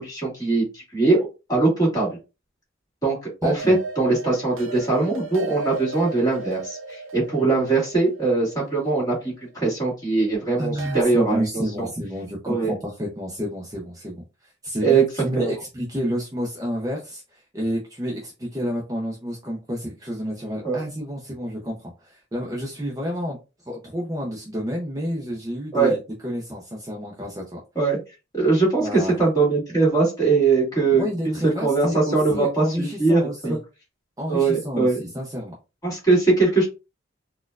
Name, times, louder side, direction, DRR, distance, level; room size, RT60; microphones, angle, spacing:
voice 1, 0.0-2.1 3.0-11.5 11.8-11.9 12.5-12.7 14.8-15.0 15.4-15.5 20.6-20.8 25.7-25.9 27.8-28.0 28.3-33.6 34.3-35.0 35.8-36.7, right 3 dB, 15° left, -4 dB, 1.7 m, -21 dB
voice 2, 3.4-3.8 10.6-23.4 23.6-27.6 28.8-29.2 30.9-33.6 34.2-35.5, equal, 15° right, -2 dB, 0.5 m, -30 dB
sound 1, 3.6-9.6 10.8-11.0, right 2 dB, 80° right, 0.7 m, -36 dB
4.1 x 2.2 x 2.3 m, 0.29 s
head